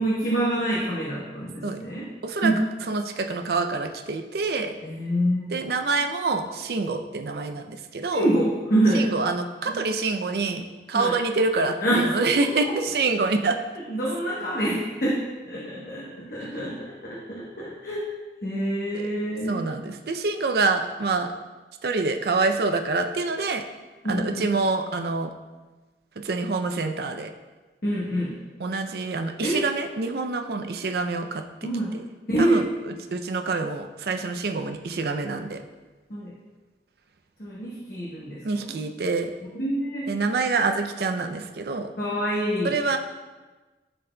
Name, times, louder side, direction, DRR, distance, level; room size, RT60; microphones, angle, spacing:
voice 1, 0.0-2.1 2.4-2.6 4.8-5.5 8.1-9.1 9.7-9.8 10.9-11.1 11.8-12.1 12.6-12.7 13.9-18.0 18.4-19.6 24.0-24.5 27.8-28.3 29.4-29.6 31.6-31.9 32.3-32.7 36.1-36.3 37.4-38.7 39.5-40.1 42.0-42.7, right 1 dB, 55° left, -6 dB, 1.0 m, -26 dB
voice 2, 2.9-4.7 5.5-8.3 8.9-13.6 18.9-19.1 19.5-21.3 21.8-23.6 24.1-25.3 26.2-27.3 28.6-31.4 32.4-32.6 33.1-35.6 38.4-39.3 40.1-41.9 42.6-43.0, right 3 dB, 60° right, 6 dB, 0.4 m, -26 dB
11.0 x 4.0 x 2.2 m, 1.2 s
head